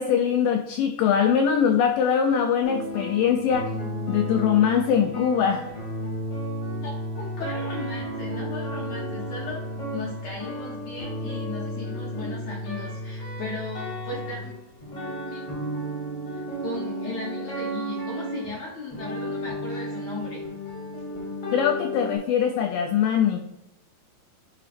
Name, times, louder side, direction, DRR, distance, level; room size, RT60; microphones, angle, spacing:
voice 1, 0.0-3.7 4.1-5.7 21.5-23.4, left 8 dB, 85° left, 4 dB, 1.9 m, -22 dB
sound 1, 2.6-22.2, equal, 45° left, 2.5 m, -33 dB
voice 2, 6.8-9.6 9.9-14.5 15.3-15.4 16.3-20.5, left 3 dB, 65° left, -4 dB, 1.8 m, -37 dB
9.9 x 4.8 x 2.5 m, 0.87 s
omnidirectional pair, 4.4 m